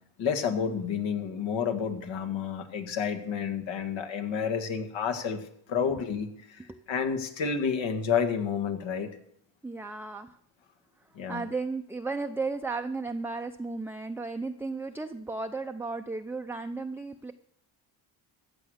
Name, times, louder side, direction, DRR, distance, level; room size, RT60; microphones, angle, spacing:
voice 1, 0.2-9.1 11.2-11.4, left 6 dB, 75° left, 7 dB, 1.9 m, -30 dB
voice 2, 9.6-10.4 11.3-17.3, right 3 dB, 5° right, 5 dB, 0.5 m, -34 dB
14.0 x 8.4 x 6.5 m, 0.70 s
cardioid pair, 100°, 46 cm